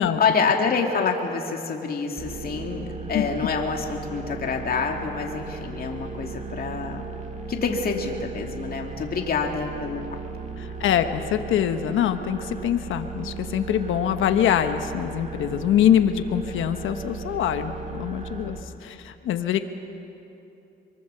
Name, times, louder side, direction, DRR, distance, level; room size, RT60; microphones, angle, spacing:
voice 1, 0.0-7.0 7.5-10.0, left 5 dB, 50° left, 2 dB, 2.4 m, -27 dB
sound 1, 2.2-18.6, right 4 dB, 35° right, 2.3 m, -36 dB
voice 2, 10.6-19.6, left 10 dB, 80° left, 8 dB, 1.2 m, -24 dB
24.0 x 23.5 x 6.9 m, 2.9 s
cardioid pair, 90°, 20 cm